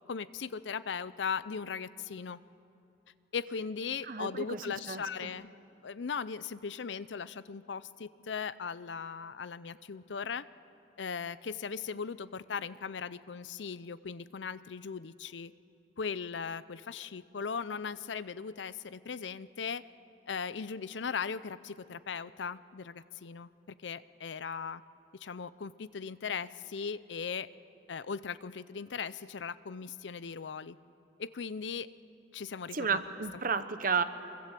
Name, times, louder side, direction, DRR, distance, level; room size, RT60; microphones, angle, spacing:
voice 1, 0.1-2.4 3.3-5.5 5.8-10.4 11.0-15.5 16.0-19.8 20.3-24.8 25.2-27.5 27.9-30.8 31.2-31.9 32.3-33.0 33.5-33.6, left 6 dB, 80° left, 16 dB, 0.6 m, -38 dB
voice 2, 4.1-5.3 32.7-34.0, right 5 dB, 50° right, 11 dB, 1.0 m, -32 dB
25.0 x 23.5 x 7.6 m, 2.8 s
head